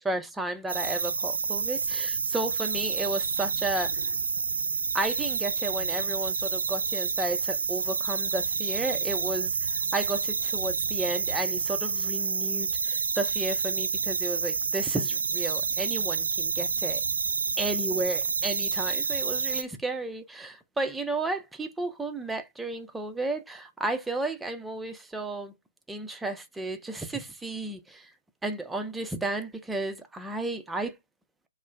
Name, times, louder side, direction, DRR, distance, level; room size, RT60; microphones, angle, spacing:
voice 1, 0.0-3.9 4.9-17.0 17.6-25.5 25.9-28.1 28.4-31.0, right 2 dB, 5° right, 0.4 m, -33 dB
sound 1, 0.7-19.6, right 5 dB, 65° right, 0.5 m, -29 dB
2.4 x 2.1 x 3.1 m
figure-of-eight pair, 130°, 0 cm